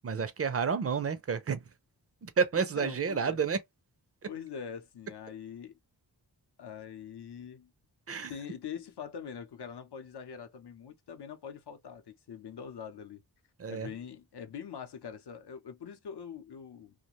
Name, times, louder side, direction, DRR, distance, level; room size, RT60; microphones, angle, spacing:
voice 1, 0.0-1.6 2.2-3.6 4.2-4.3 8.1-8.3 13.6-13.9, right 6 dB, 40° right, 0.4 m, -30 dB
voice 2, 2.6-3.4 4.3-5.8 6.6-7.7 8.3-13.2 13.7-16.9, left 7 dB, 80° left, 0.7 m, -43 dB
2.4 x 2.1 x 2.8 m
wide cardioid pair, 90°, 40 cm